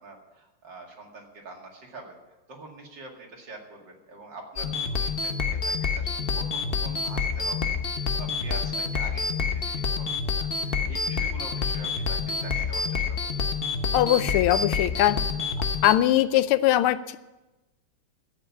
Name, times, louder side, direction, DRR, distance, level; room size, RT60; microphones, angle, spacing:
voice 1, 0.0-2.2 2.5-10.1 10.3-13.4, right 3 dB, 55° right, 0 dB, 2.9 m, -45 dB
sound 1, 4.6-15.9, left 5 dB, 45° left, 0.7 m, -28 dB
voice 2, 13.9-15.2 15.8-17.2, left 13 dB, 90° left, 14 dB, 1.5 m, -21 dB
13.5 x 8.5 x 8.4 m, 1.1 s
omnidirectional pair, 2.3 m